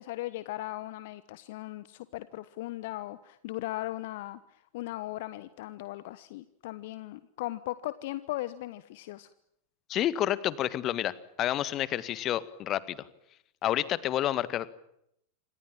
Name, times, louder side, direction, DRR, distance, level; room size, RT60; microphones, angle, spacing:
voice 1, 0.0-9.3, left 16 dB, 50° left, 15 dB, 1.1 m, -38 dB
voice 2, 9.9-11.1 11.4-13.0 13.6-14.7, left 12 dB, 35° left, 16 dB, 1.8 m, -29 dB
28.0 x 26.0 x 7.5 m, 0.76 s
figure-of-eight pair, 90°, 0 cm